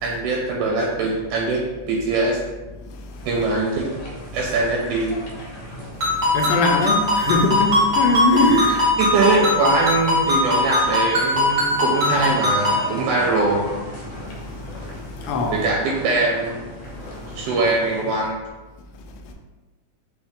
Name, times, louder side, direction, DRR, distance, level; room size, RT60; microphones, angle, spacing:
voice 1, 0.0-1.6 1.9-2.4 3.3-3.9 4.3-5.2 9.0-13.6 15.5-16.5 17.4-18.4, right 3 dB, 80° right, -2 dB, 2.0 m, -22 dB
sound 1, 3.1-18.3, equal, 70° left, 1.3 m, -37 dB
Ringtone, 6.0-12.9, left 1 dB, 50° right, 0.9 m, -20 dB
voice 2, 6.3-8.9 15.2-15.6, left 3 dB, 85° left, 3 dB, 2.2 m, -20 dB
5.1 x 2.7 x 3.6 m, 1.2 s
omnidirectional pair, 3.8 m